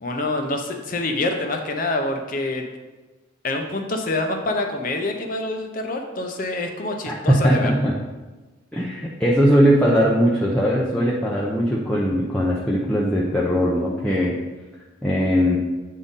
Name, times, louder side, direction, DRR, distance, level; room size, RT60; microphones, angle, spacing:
voice 1, 0.0-2.6 3.4-7.7, left 2 dB, 45° left, 4 dB, 0.6 m, -26 dB
voice 2, 7.1-7.9 8.7-14.4 15.0-15.6, equal, 5° left, -6 dB, 0.5 m, -20 dB
8.4 x 3.7 x 4.0 m, 1.2 s
head